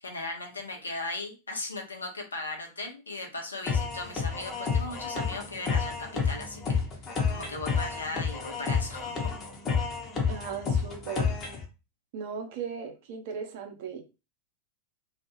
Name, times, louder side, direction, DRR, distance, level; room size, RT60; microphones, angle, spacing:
voice 1, 0.0-6.8 7.3-9.3, left 2 dB, 75° left, 2 dB, 0.7 m, -37 dB
sound 1, 3.7-11.6, left 5 dB, 25° left, 0.8 m, -30 dB
voice 2, 10.3-11.3 12.1-14.0, right 6 dB, 50° right, 5 dB, 0.6 m, -37 dB
2.3 x 2.2 x 3.0 m, 0.29 s
figure-of-eight pair, 90°, 0 cm